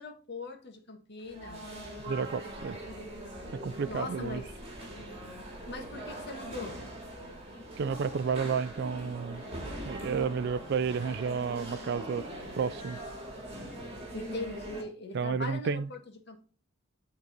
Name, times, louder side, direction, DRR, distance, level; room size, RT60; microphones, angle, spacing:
voice 1, 0.0-1.6 3.8-4.5 5.7-6.8 14.1-16.4, left 3 dB, 55° left, 1.6 m, -40 dB
sound 1, 1.2-14.8, right 1 dB, 30° right, 2.3 m, -42 dB
voice 2, 2.1-2.8 3.6-4.4 7.8-9.4 9.9-12.3 12.6-13.0 15.1-15.9, right 6 dB, 55° right, 0.3 m, -31 dB
8.1 x 3.9 x 5.1 m
head